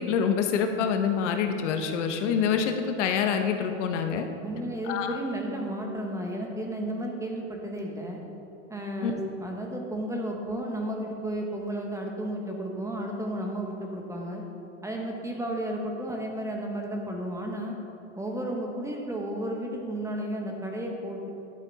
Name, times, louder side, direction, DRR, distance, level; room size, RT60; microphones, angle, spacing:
voice 1, 0.0-4.2 4.9-5.2 9.0-9.1, left 7 dB, 70° left, 6 dB, 1.0 m, -26 dB
voice 2, 4.4-8.2 8.7-14.4 14.8-17.7 18.2-21.3, right 1 dB, 10° right, 1 dB, 1.0 m, -33 dB
11.5 x 7.1 x 4.1 m, 2.9 s
supercardioid pair, 125°, 38 cm